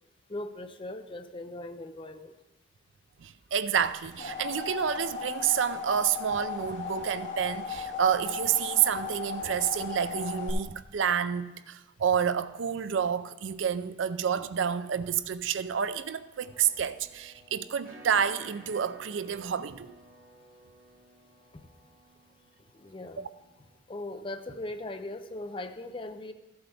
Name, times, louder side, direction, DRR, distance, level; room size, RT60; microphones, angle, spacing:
voice 1, 0.3-2.3 21.5-21.6 22.7-23.3 23.9-26.3, left 2 dB, 25° left, 0.5 m, -39 dB
voice 2, 3.2-19.9 23.2-23.3, right 8 dB, 75° right, 0.4 m, -29 dB
sound 1, 3.8-10.5, left 5 dB, 70° left, 2.3 m, -37 dB
sound 2, 16.4-23.8, right 1 dB, 50° right, 1.5 m, -54 dB
14.5 x 7.9 x 3.4 m
head